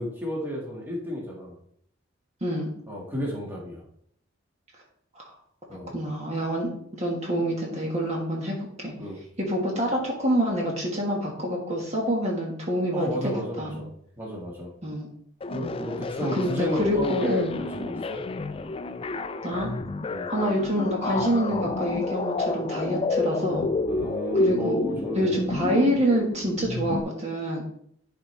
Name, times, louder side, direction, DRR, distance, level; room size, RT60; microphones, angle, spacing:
voice 1, 0.0-1.6 2.9-3.8 5.7-5.9 9.0-9.2 12.9-13.9 14.2-14.7 15.5-18.2 20.1-20.3 23.9-25.4, equal, 10° right, -3 dB, 1.6 m, -32 dB
voice 2, 5.9-8.9 9.4-13.2 13.6-13.8 14.8-15.1 16.4-17.6 19.4-19.7 20.3-23.7 24.3-24.8 25.1-27.6, equal, 35° right, -1 dB, 1.4 m, -27 dB
sound 1, 15.4-27.0, left 3 dB, 30° left, 0.4 m, -30 dB
11.5 x 4.4 x 3.2 m, 0.68 s
head